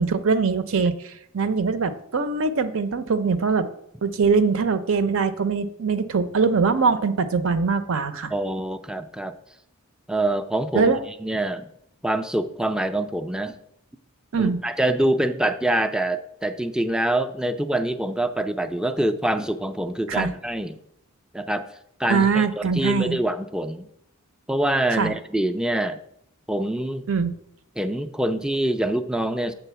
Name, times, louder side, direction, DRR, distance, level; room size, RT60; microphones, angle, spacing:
voice 1, 0.0-3.7 4.0-8.3 10.7-11.0 14.3-14.6 20.1-20.3 22.1-23.2 25.0-25.1 27.1-27.3, right 5 dB, 65° right, 11 dB, 0.6 m, -22 dB
voice 2, 8.3-9.3 10.1-10.9 11.2-11.7 12.0-13.6 14.4-20.8 21.3-21.7 22.0-23.9 24.5-26.0 26.5-27.1 27.8-29.5, right 1 dB, 5° right, 8 dB, 0.4 m, -25 dB
8.2 x 3.8 x 6.8 m, 0.74 s
head